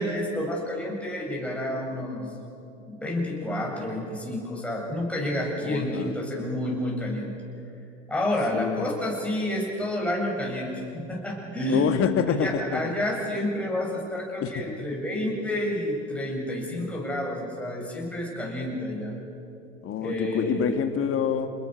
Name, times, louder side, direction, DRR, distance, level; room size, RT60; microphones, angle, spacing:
voice 1, 0.0-2.3 2.9-7.3 8.1-11.9 12.3-19.1 20.0-20.8, left 1 dB, 5° left, -3 dB, 7.7 m, -29 dB
voice 2, 5.6-6.1 8.5-8.9 11.7-12.8 14.4-14.5 19.8-21.5, left 8 dB, 35° left, 8 dB, 1.9 m, -26 dB
29.5 x 21.0 x 6.5 m, 2.7 s
hypercardioid pair, 90°, 36 cm